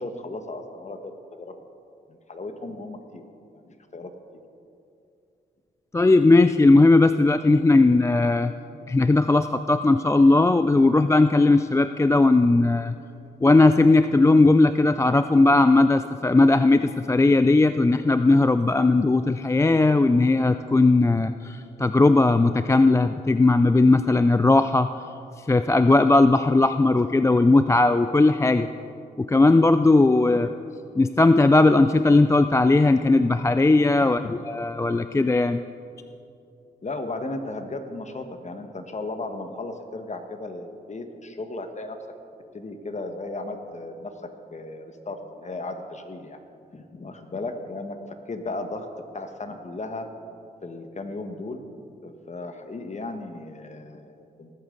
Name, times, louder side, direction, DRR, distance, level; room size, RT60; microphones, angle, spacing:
voice 1, 0.0-1.6 2.1-3.2 3.5-4.4 30.3-30.4 34.0-34.4 36.8-42.0 42.5-46.4 46.7-48.0 48.3-48.9 49.1-50.1 50.6-54.5, left 2 dB, 40° left, 6 dB, 1.4 m, -36 dB
voice 2, 5.9-8.5 8.9-13.0 13.4-24.9 25.5-28.7 29.2-30.5 31.0-35.6, left 2 dB, 15° left, 10 dB, 0.4 m, -18 dB
19.5 x 8.7 x 3.9 m, 2.5 s
supercardioid pair, 50°, 18 cm